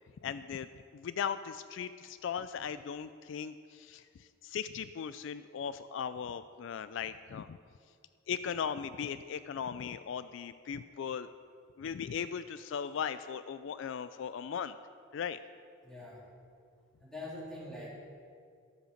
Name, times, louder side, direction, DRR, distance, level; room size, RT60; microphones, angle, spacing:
voice 1, 0.2-0.7 0.9-7.6 8.3-11.3 11.8-14.8 15.1-15.4, left 7 dB, 65° left, 13 dB, 0.3 m, -38 dB
voice 2, 15.8-16.2 17.0-17.9, left 1 dB, 5° left, -8 dB, 3.6 m, -44 dB
13.0 x 8.0 x 6.4 m, 2.3 s
head